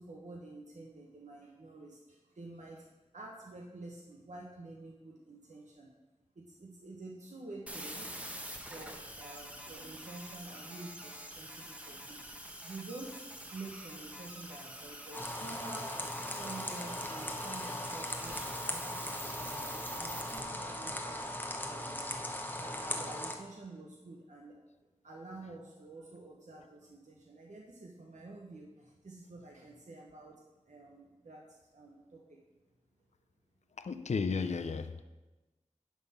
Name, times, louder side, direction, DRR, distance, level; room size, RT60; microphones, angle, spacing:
voice 1, 0.0-2.9 3.1-5.9 6.3-8.1 8.7-15.9 16.2-21.3 21.6-24.6 25.0-30.4 30.7-32.4, right 2 dB, 70° right, -2 dB, 1.0 m, -49 dB
sound 1, 7.7-20.4, equal, 10° right, 1.0 m, -46 dB
sound 2, 15.1-23.3, left 1 dB, 15° left, 0.9 m, -39 dB
voice 2, 33.8-35.0, left 5 dB, 65° left, 9 dB, 0.5 m, -34 dB
10.5 x 3.7 x 5.7 m, 1.1 s
wide cardioid pair, 45°, 13 cm